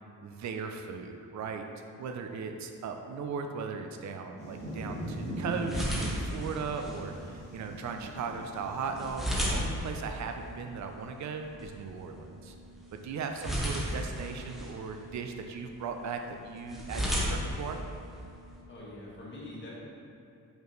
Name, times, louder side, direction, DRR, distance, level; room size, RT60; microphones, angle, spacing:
voice 1, 0.2-1.6 2.0-9.3 9.5-12.5 12.9-17.8, right 5 dB, 55° right, 5 dB, 0.5 m, -38 dB
sound 1, 4.4-9.6, equal, 20° right, 1.1 m, -40 dB
sound 2, 4.6-18.6, equal, ahead, 0.7 m, -37 dB
voice 2, 18.7-19.7, left 2 dB, 35° left, -6 dB, 1.3 m, -44 dB
5.4 x 4.6 x 3.8 m, 2.7 s
wide cardioid pair, 180°, 34 cm